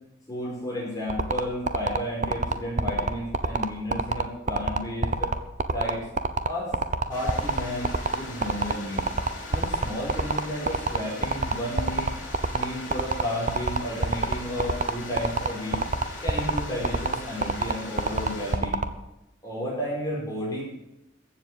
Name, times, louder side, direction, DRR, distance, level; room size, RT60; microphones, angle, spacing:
voice 1, 0.3-5.4 5.7-6.1 6.5-6.7 7.0-9.1 9.5-12.1 12.5-15.8 16.2-18.8 19.4-20.6, left 1 dB, 20° left, -5 dB, 5.2 m, -32 dB
sound 1, 1.1-18.9, right 3 dB, 40° right, 0.9 m, -25 dB
Stream, 7.1-18.6, left 2 dB, 40° left, 7.4 m, -40 dB
15.0 x 7.6 x 9.5 m, 0.91 s
head